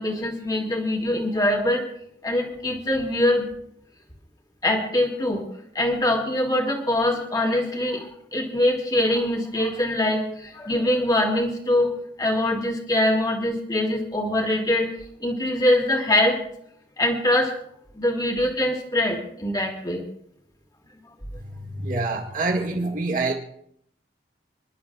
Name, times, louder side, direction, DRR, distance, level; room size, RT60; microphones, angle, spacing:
voice 1, 0.0-1.8 2.2-3.5 4.6-5.4 5.8-14.9 15.2-16.4 17.0-17.5 18.0-20.0, left 1 dB, 20° left, 2 dB, 2.0 m, -23 dB
voice 2, 21.5-23.3, right 3 dB, 50° right, 1 dB, 2.0 m, -26 dB
29.5 x 11.0 x 2.4 m, 0.69 s
head